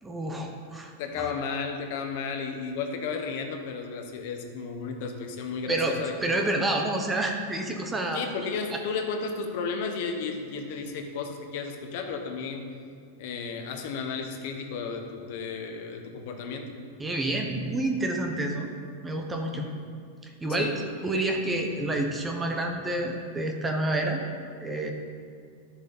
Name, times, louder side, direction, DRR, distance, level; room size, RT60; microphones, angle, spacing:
voice 1, 0.0-1.3 5.7-8.2 17.0-18.7 19.0-19.7 20.2-24.2 24.6-24.9, right 2 dB, 10° right, 3 dB, 0.8 m, -29 dB
voice 2, 1.0-6.1 8.1-12.7 13.2-16.8 19.5-19.8 20.6-20.7, left 5 dB, 55° left, 4 dB, 1.2 m, -33 dB
12.5 x 7.1 x 4.0 m, 2.1 s
supercardioid pair, 150°, 0 cm